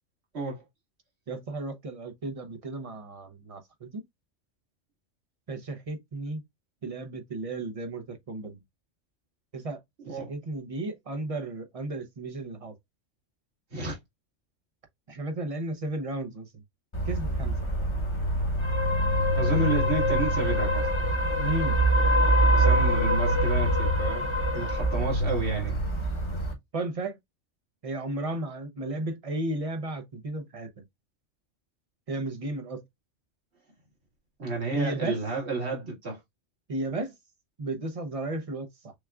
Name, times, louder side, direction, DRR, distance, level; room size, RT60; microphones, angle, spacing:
voice 1, 1.3-4.0 5.5-6.4 6.8-8.6 9.5-9.8 10.1-12.7 15.1-16.5 17.1-17.5 21.4-21.8 26.7-27.2 27.8-30.8 32.1-32.8 34.7-35.2 36.7-37.1 37.6-38.9, right 2 dB, 35° right, 0.7 m, -34 dB
sound 1, 16.9-26.5, right 1 dB, 25° left, 1.0 m, -24 dB
voice 2, 19.4-20.9 22.5-24.3 24.5-25.8 34.4-36.2, right 2 dB, 60° right, 2.2 m, -31 dB
6.2 x 2.3 x 2.3 m
omnidirectional pair, 1.3 m